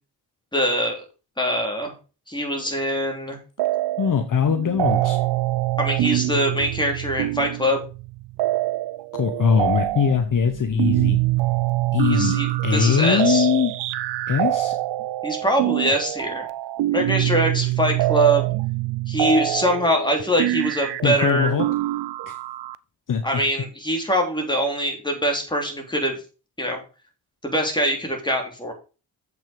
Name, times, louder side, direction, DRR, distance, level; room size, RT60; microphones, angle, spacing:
voice 1, 0.5-1.0 1.4-1.9 2.3-3.4 5.8-7.8 12.0-13.5 15.2-16.5 16.9-18.5 19.1-21.5 23.2-26.2 26.6-26.8 27.4-28.7, equal, 10° left, 2 dB, 3.4 m, -23 dB
sound 1, 3.6-4.2 4.5-22.8, right 16 dB, 75° right, 0.6 m, -25 dB
voice 2, 4.0-5.2 9.1-11.2 11.9-12.4 12.6-13.7 14.3-14.7 21.0-21.7 22.3-22.4 23.1-23.2, left 7 dB, 50° left, 8 dB, 1.0 m, -21 dB
7.4 x 6.1 x 5.2 m, 0.33 s
cardioid pair, 65°, 42 cm